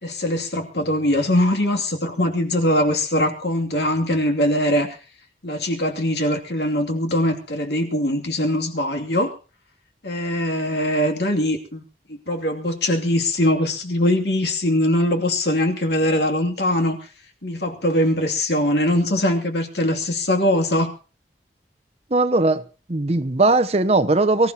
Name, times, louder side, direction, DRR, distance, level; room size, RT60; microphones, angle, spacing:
voice 1, 0.0-5.0 5.4-9.3 10.0-11.8 12.1-17.0 17.4-20.9, left 1 dB, 70° left, 3 dB, 2.7 m, -22 dB
voice 2, 22.1-22.6 22.9-24.5, right 2 dB, 35° right, 12 dB, 0.8 m, -18 dB
24.0 x 14.5 x 2.9 m, 0.35 s
head